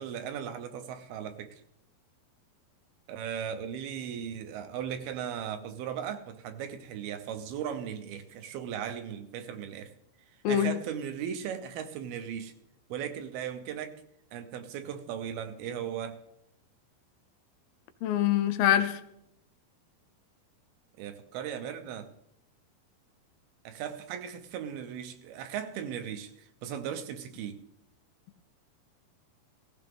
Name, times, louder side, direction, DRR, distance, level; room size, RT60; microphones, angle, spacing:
voice 1, 0.0-1.5 3.1-9.9 10.5-12.5 12.9-14.0 14.3-16.2 21.0-22.1 23.6-27.6, right 8 dB, 75° right, 2.7 m, -37 dB
voice 2, 10.4-10.7 18.0-19.0, left 10 dB, 80° left, 2.6 m, -24 dB
17.0 x 16.0 x 3.6 m
omnidirectional pair, 4.7 m